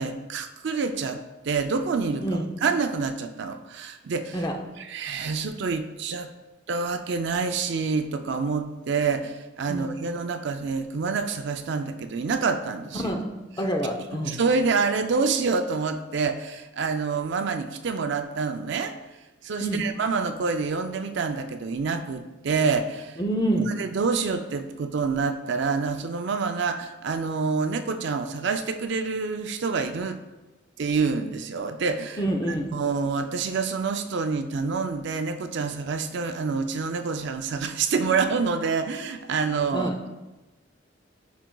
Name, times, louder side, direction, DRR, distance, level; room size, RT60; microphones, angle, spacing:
voice 1, 0.0-4.4 4.8-6.3 6.7-13.1 14.3-18.9 19.4-23.2 23.7-30.2 30.8-32.2 32.5-40.1, right 4 dB, 60° right, 8 dB, 0.4 m, -27 dB
voice 2, 13.6-14.3 19.6-19.8 23.2-23.7 32.2-32.7 39.7-40.0, right 1 dB, 20° left, 3 dB, 0.6 m, -26 dB
10.5 x 5.1 x 2.3 m, 1.1 s
head